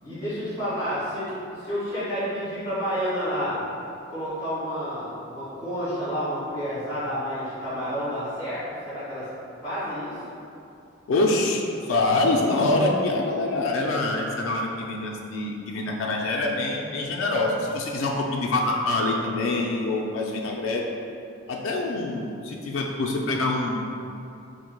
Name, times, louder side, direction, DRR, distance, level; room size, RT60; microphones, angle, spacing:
voice 1, 0.0-1.3 1.6-3.6 4.1-9.3 9.6-10.1, equal, 20° left, -13 dB, 1.5 m, -30 dB
voice 2, 11.1-20.8 21.5-23.9, left 2 dB, 75° left, 0 dB, 0.3 m, -25 dB
4.2 x 2.5 x 2.2 m, 2.7 s
head